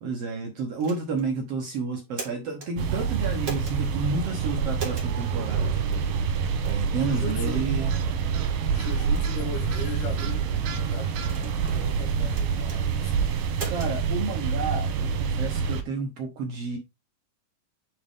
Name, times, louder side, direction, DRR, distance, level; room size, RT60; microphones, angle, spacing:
voice 1, 0.0-5.7 6.6-7.9 13.6-16.8, right 4 dB, 65° right, 1.6 m, -31 dB
sound 1, 0.8-1.3 1.9-2.7 3.4-3.8 4.7-5.1 5.9-6.1 6.6-6.9 7.4-7.6 8.2-8.3 8.9-9.2 10.0-10.4 11.2-11.8 12.3-12.8 13.5-13.9, right 4 dB, 35° right, 2.0 m, -38 dB
sound 2, 2.8-15.8, right 6 dB, 85° right, 2.9 m, -27 dB
voice 2, 7.0-7.6 8.7-13.3, left 6 dB, 75° left, 2.9 m, -38 dB
9.0 x 4.3 x 3.5 m
omnidirectional pair, 3.9 m